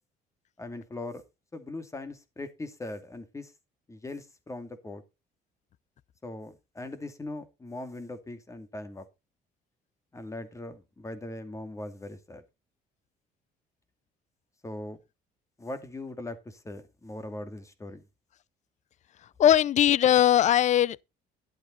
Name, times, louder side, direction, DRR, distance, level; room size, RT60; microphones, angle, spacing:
voice 1, 0.6-1.2 1.5-3.5 3.9-5.0 6.2-9.1 10.1-12.4 14.6-15.0 15.6-18.1, left 2 dB, 15° left, 2.5 m, -40 dB
voice 2, 19.4-21.0, left 11 dB, 45° left, 0.5 m, -20 dB
11.5 x 7.8 x 4.0 m
cardioid pair, 110°, 17 cm